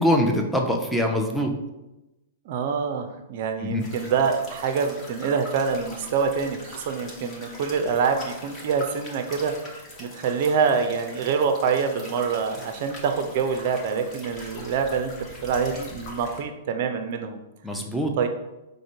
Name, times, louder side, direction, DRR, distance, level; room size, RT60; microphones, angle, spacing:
voice 1, 0.0-1.5 3.6-3.8 17.6-18.2, equal, ahead, 1 dB, 0.5 m, -23 dB
voice 2, 2.5-15.1 15.4-17.4 18.2-18.3, right 5 dB, 45° right, 7 dB, 0.4 m, -26 dB
sound 1, 3.8-16.4, left 1 dB, 25° left, 0.9 m, -42 dB
4.9 x 2.1 x 4.4 m, 0.99 s
figure-of-eight pair, 105°, 0 cm